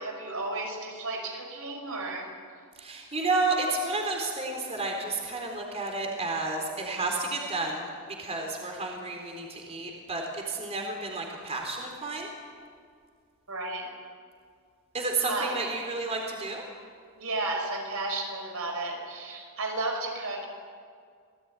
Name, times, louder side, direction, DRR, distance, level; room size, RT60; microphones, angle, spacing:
voice 1, 0.0-2.3 13.5-13.9 15.3-15.6 17.2-20.5, right 2 dB, 70° right, 3 dB, 5.7 m, -33 dB
voice 2, 2.8-7.9 8.2-12.3 14.9-16.6, right 3 dB, 30° right, 1 dB, 4.0 m, -31 dB
28.0 x 18.5 x 9.7 m, 2.1 s
head